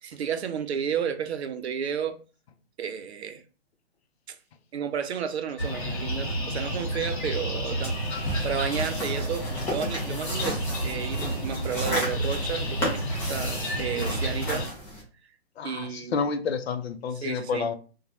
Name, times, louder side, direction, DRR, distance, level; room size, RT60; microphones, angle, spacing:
voice 1, 0.0-2.2 2.8-3.4 4.3-4.4 4.7-13.0 13.3-14.7 15.6-16.2 17.2-17.7, right 7 dB, 75° right, 0.6 m, -32 dB
sound 1, 5.6-14.7, right 1 dB, 50° left, 1.4 m, -30 dB
sound 2, 7.8-15.0, equal, 5° left, 0.4 m, -34 dB
Mallet percussion, 8.7-11.0, left 7 dB, 25° right, 1.2 m, -49 dB
voice 2, 15.6-17.7, left 5 dB, 70° left, 0.6 m, -29 dB
3.0 x 2.2 x 2.6 m
hypercardioid pair, 145°, 33 cm